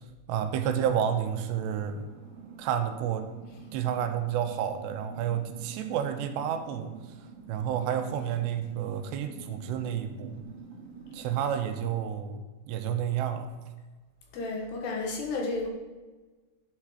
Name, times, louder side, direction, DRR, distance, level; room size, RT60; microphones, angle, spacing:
voice 1, 0.3-2.1 2.6-3.3 3.7-7.0 7.5-10.4 11.1-13.5, right 9 dB, 85° right, 7 dB, 2.7 m, -30 dB
sound 1, 0.8-12.0, right 5 dB, 65° right, 1.6 m, -48 dB
voice 2, 14.3-15.7, left 3 dB, 70° left, 0 dB, 3.4 m, -32 dB
11.0 x 4.8 x 4.7 m, 1.3 s
omnidirectional pair, 5.0 m